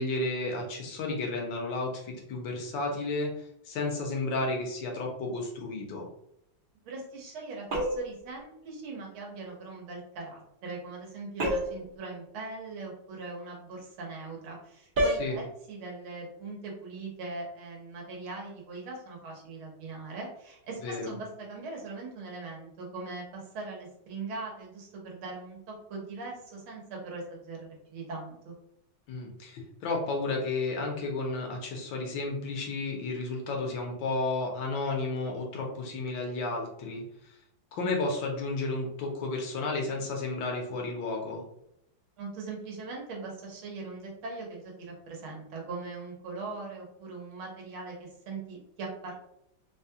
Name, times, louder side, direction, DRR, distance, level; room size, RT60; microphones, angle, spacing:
voice 1, 0.0-6.1 15.2-15.4 20.8-21.2 29.1-37.4 37.7-41.4, left 3 dB, 70° left, 1 dB, 1.5 m, -32 dB
voice 2, 6.9-28.5 42.2-49.2, right 3 dB, 85° right, -1 dB, 1.8 m, -40 dB
sound 1, 7.7-8.2 11.4-11.9 14.9-15.3, equal, 55° right, 0.5 m, -28 dB
4.1 x 2.2 x 2.7 m, 0.78 s
omnidirectional pair, 2.2 m